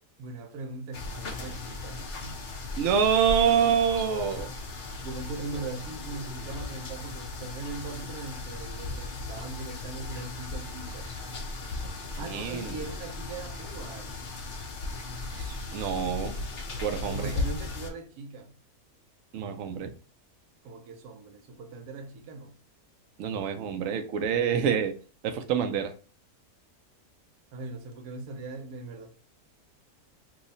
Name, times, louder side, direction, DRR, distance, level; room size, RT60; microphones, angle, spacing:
voice 1, 0.2-2.4 5.0-11.1 12.2-14.1 17.1-18.6 20.6-22.6 27.5-29.1, right 3 dB, 85° right, 1.2 m, -40 dB
sound 1, 0.9-17.9, left 3 dB, 65° left, 0.5 m, -37 dB
voice 2, 2.8-4.5 12.2-12.8 15.4-16.4 16.8-17.3 19.3-19.9 23.2-24.9 25.2-25.9, right 7 dB, 70° right, 0.8 m, -26 dB
3.0 x 2.3 x 3.9 m
omnidirectional pair, 1.6 m